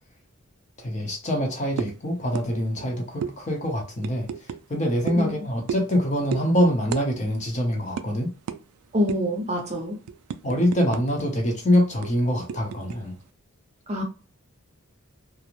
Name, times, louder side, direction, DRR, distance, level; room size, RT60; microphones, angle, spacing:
voice 1, 0.8-8.3 10.4-13.2, equal, 35° left, 0.7 m, -25 dB
sound 1, 1.8-2.0 2.4-2.5 2.7-2.9 3.2-3.3 4.0-4.6 5.1-5.3 5.7-6.0 6.3-6.5 6.9-7.1 7.3-7.5 8.0-8.1 8.5-8.6 9.1-9.4 9.8-11.2 11.5-11.6 12.0-13.0, right 7 dB, 80° right, 0.3 m, -32 dB
voice 2, 8.9-10.0 13.9-14.0, left 1 dB, 30° right, 0.6 m, -25 dB
2.4 x 2.0 x 2.9 m
head